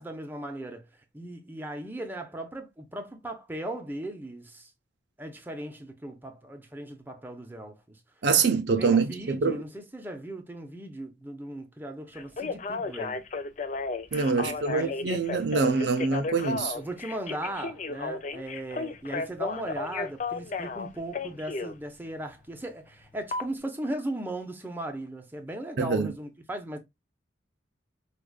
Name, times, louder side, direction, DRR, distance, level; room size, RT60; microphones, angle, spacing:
voice 1, 0.0-4.7 5.2-8.0 8.8-13.2 14.5-15.3 16.7-26.8, right 1 dB, 10° right, 0.6 m, -37 dB
voice 2, 8.2-9.6 14.1-16.8 25.8-26.1, right 4 dB, 60° right, 0.5 m, -25 dB
Telephone, 12.1-21.7 23.3-23.4, left 3 dB, 40° left, 0.5 m, -33 dB
4.8 x 2.4 x 2.3 m
head